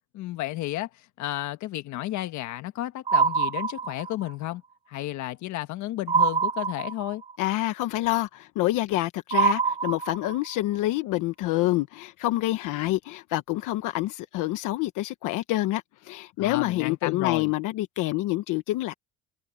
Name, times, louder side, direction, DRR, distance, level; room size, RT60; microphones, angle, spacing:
voice 1, 0.1-4.6 4.9-7.2 16.4-17.5, left 15 dB, 65° left, 1.5 m, -32 dB
sound 1, 3.1-4.3 6.1-7.3 9.3-10.5, right 5 dB, 20° right, 0.4 m, -25 dB
voice 2, 7.4-18.9, left 17 dB, 85° left, 1.1 m, -27 dB
cardioid pair, 160°, 31 cm